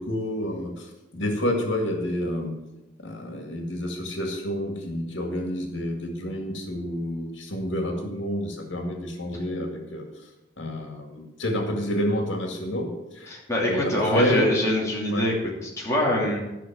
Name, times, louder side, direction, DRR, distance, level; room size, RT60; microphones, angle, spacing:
voice 1, 0.0-2.5 3.0-10.1 10.6-12.9 13.1-13.3 13.7-14.5 15.1-15.2, equal, 90° left, 2 dB, 2.1 m, -29 dB
voice 2, 13.3-15.3 15.6-16.4, left 1 dB, 15° left, -4 dB, 2.8 m, -24 dB
12.0 x 6.1 x 7.4 m, 1.0 s
head